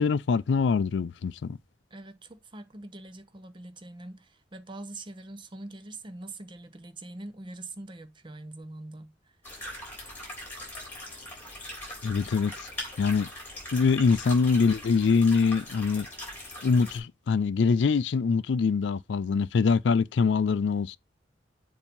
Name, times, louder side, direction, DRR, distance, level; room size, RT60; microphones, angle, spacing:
voice 1, 0.0-1.6 12.0-12.7 13.0-13.3 13.7-16.1 16.6-21.0, left 5 dB, 70° left, 0.4 m, -24 dB
voice 2, 1.9-9.1, right 2 dB, 25° right, 0.7 m, -43 dB
sound 1, 9.4-17.0, left 1 dB, 10° left, 3.2 m, -41 dB
7.2 x 2.8 x 5.2 m
head